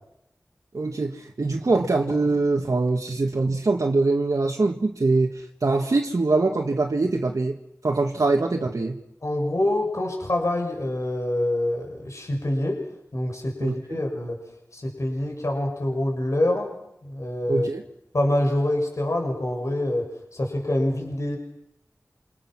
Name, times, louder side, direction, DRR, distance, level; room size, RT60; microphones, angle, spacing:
voice 1, 0.7-9.0 13.6-14.0 17.5-17.8, right 3 dB, 75° right, 0 dB, 2.0 m, -23 dB
voice 2, 9.2-12.8 13.1-14.4 14.7-16.7 17.0-17.7 18.1-21.4, left 1 dB, 60° left, 2 dB, 6.6 m, -26 dB
28.0 x 27.0 x 6.2 m, 0.80 s
wide cardioid pair, 55°, 6 cm